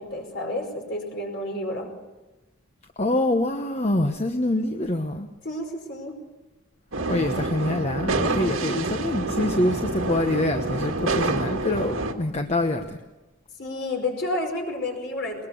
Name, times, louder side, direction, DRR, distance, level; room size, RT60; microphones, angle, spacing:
voice 1, 0.0-1.9 5.4-6.2 13.6-15.5, left 1 dB, 55° left, 2 dB, 5.2 m, -30 dB
voice 2, 3.0-5.3 7.1-13.0, left 1 dB, 30° left, 5 dB, 1.0 m, -25 dB
sound 1, 6.9-12.1, right 2 dB, 85° right, 2.0 m, -27 dB
21.0 x 21.0 x 7.0 m, 1.1 s
head